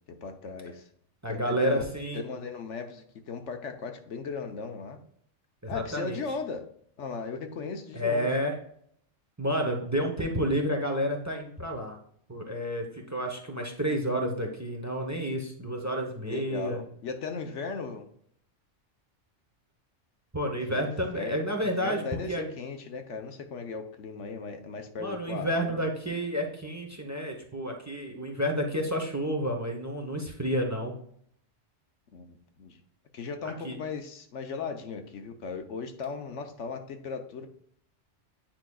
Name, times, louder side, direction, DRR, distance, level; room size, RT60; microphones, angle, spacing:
voice 1, 0.2-0.9 1.3-1.8 2.1-5.0 5.7-6.6 7.0-8.3 16.3-18.1 20.7-20.9 21.1-25.9 32.1-32.8 33.1-37.5, left 5 dB, 75° left, 6 dB, 1.2 m, -37 dB
voice 2, 1.2-2.2 5.6-6.3 7.9-8.5 9.4-12.0 12.3-16.8 20.3-22.0 22.3-22.5 25.0-30.9 33.4-33.8, equal, 15° right, 2 dB, 0.8 m, -30 dB
9.0 x 4.9 x 2.3 m, 0.65 s
omnidirectional pair, 1.2 m